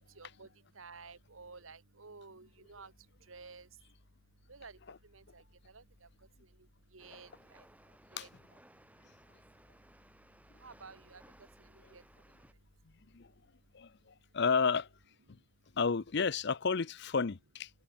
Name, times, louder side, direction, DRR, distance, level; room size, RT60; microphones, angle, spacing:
voice 1, 0.2-0.5 0.8-2.9 3.3-3.7 4.5-4.8 5.1-6.1 6.9-7.6 8.1-8.3 10.6-11.2 11.9-12.0, right 4 dB, 85° right, 1.8 m, -52 dB
sound 1, 2.4-14.1, left 1 dB, 85° left, 5.4 m, -69 dB
Train, 7.0-12.5, right 1 dB, 5° right, 5.4 m, -61 dB
voice 2, 14.3-14.9 15.8-17.7, left 5 dB, 55° left, 0.7 m, -31 dB
head